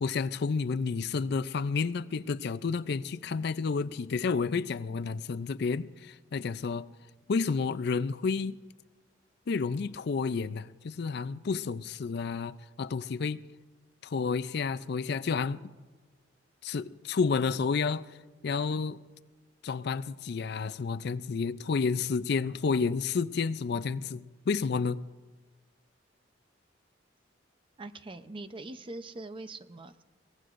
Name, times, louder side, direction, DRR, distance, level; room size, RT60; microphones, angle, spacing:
voice 1, 0.0-6.9 7.3-8.6 9.5-13.4 14.0-15.6 16.6-18.1 18.4-19.0 19.6-25.0, left 5 dB, 60° left, 0.4 m, -30 dB
voice 2, 27.8-30.0, right 2 dB, 25° right, 0.6 m, -42 dB
23.0 x 19.5 x 2.5 m
head